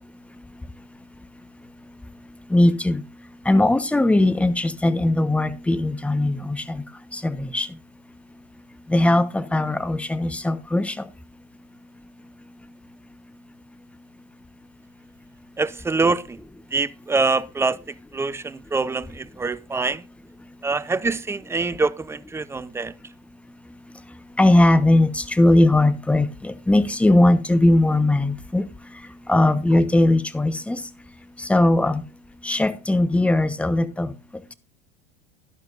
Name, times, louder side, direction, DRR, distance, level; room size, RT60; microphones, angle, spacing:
voice 1, 2.5-3.0 3.4-6.8 7.1-7.7 8.9-10.9 24.4-28.6 29.3-30.8 31.4-32.0 32.4-34.1, left 1 dB, 5° left, 1.1 m, -19 dB
voice 2, 15.6-16.4 16.7-17.8 18.1-20.0 20.6-22.9, right 3 dB, 15° right, 0.6 m, -24 dB
11.5 x 11.5 x 2.5 m
hypercardioid pair, 80°, 20 cm